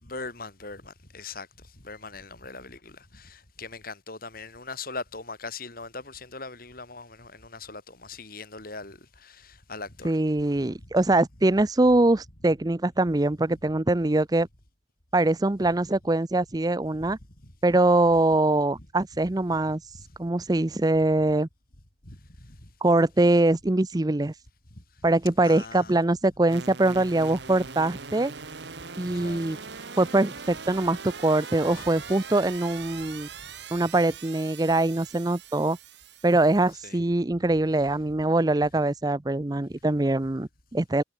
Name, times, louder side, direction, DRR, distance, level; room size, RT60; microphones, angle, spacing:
voice 1, 0.0-10.2 10.8-10.9 17.4-17.5 22.0-22.7 24.7-25.1 25.4-26.0 29.1-29.5 29.7-29.9 31.6-32.2 33.3-33.6 36.8-37.0, left 3 dB, 50° left, 5.2 m, -41 dB
voice 2, 10.0-14.5 15.1-17.2 17.6-19.8 20.2-21.5 22.8-24.3 25.0-28.3 29.0-29.6 30.0-33.3 33.7-35.8 36.2-41.0, right 2 dB, 20° right, 0.6 m, -23 dB
sound 1, 26.5-36.7, right 5 dB, 70° right, 1.7 m, -41 dB
head